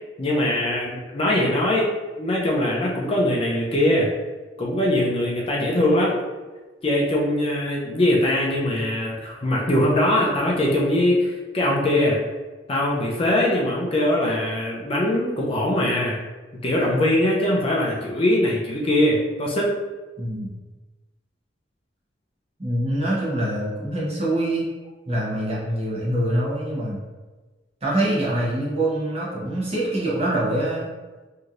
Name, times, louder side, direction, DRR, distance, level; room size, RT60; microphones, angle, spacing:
voice 1, 0.2-1.9 2.2-4.1 4.6-6.2 6.8-12.2 12.7-16.2 16.6-19.7, left 1 dB, 30° left, -3 dB, 0.5 m, -21 dB
voice 2, 20.2-20.5 22.6-24.7 25.1-27.0 27.8-30.9, right 1 dB, 35° right, -6 dB, 0.9 m, -24 dB
3.1 x 2.7 x 2.4 m, 1.3 s
head